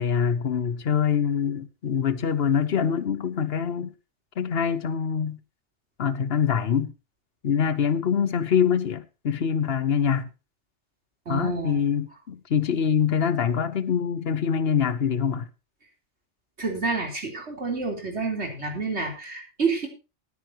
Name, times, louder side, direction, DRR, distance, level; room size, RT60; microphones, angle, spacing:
voice 1, 0.0-3.9 4.4-5.4 6.0-6.9 7.4-10.3 11.3-15.5, left 7 dB, 65° left, 1.1 m, -24 dB
voice 2, 11.3-11.8 16.6-19.9, right 4 dB, 70° right, 3.9 m, -29 dB
19.5 x 9.6 x 2.9 m
omnidirectional pair, 1.2 m